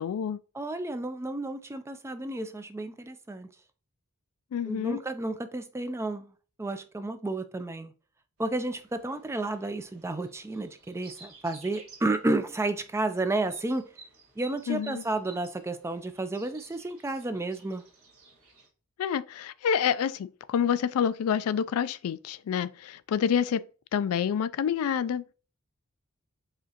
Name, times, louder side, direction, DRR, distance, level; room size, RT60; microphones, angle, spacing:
voice 1, 0.0-0.4 4.5-5.0 14.7-15.0 19.0-23.6 23.9-25.3, left 8 dB, 70° left, 0.3 m, -28 dB
voice 2, 0.5-3.5 4.7-6.3 6.6-7.9 8.4-13.9 14.4-17.8, right 2 dB, 10° right, 0.3 m, -31 dB
sound 1, 8.4-18.7, right 3 dB, 80° right, 1.6 m, -54 dB
4.9 x 3.6 x 2.8 m
head